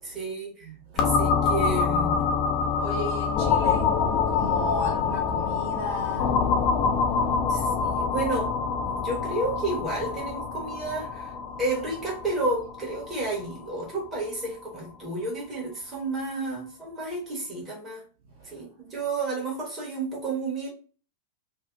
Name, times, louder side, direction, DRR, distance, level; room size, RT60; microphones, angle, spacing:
voice 1, 0.0-0.7 0.9-2.3 7.2-8.5 8.8-11.3 11.6-18.0 18.5-20.7, right 2 dB, 20° right, 0.9 m, -31 dB
voice 2, 0.6-1.1 2.6-7.9 18.4-18.7, equal, 55° right, 0.9 m, -36 dB
sound 1, 1.0-14.5, left 6 dB, 35° left, 0.4 m, -26 dB
2.6 x 2.0 x 2.3 m
figure-of-eight pair, 90°, 0 cm